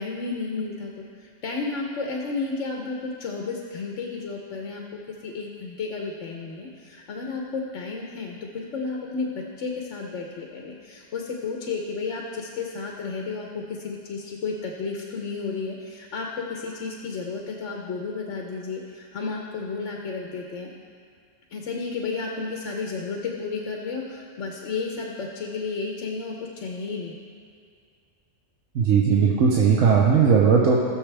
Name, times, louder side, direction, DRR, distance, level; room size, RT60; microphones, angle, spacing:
voice 1, 0.0-20.7 21.5-27.1, left 4 dB, 70° left, 0 dB, 1.2 m, -32 dB
voice 2, 28.7-30.8, right 6 dB, 85° right, -3 dB, 1.3 m, -18 dB
19.0 x 6.6 x 3.4 m, 2.2 s
omnidirectional pair, 1.3 m